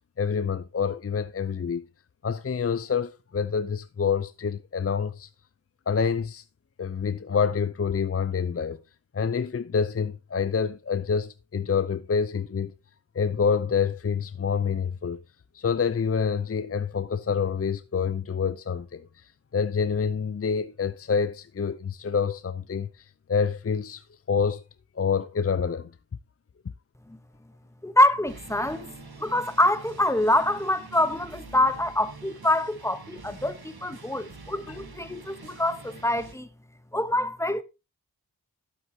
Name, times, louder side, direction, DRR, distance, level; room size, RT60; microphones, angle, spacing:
voice 1, 0.2-1.8 2.2-5.3 5.9-6.4 6.8-8.8 9.1-12.7 13.1-15.2 15.5-19.1 19.5-22.9 23.3-24.6 25.0-25.9 34.7-34.8, left 6 dB, 40° left, 0.5 m, -27 dB
voice 2, 27.8-36.5 36.9-37.6, left 1 dB, 10° left, 1.0 m, -25 dB
sound 1, 28.3-36.4, right 4 dB, 80° right, 1.6 m, -46 dB
11.5 x 7.7 x 2.8 m
wide cardioid pair, 40°, 37 cm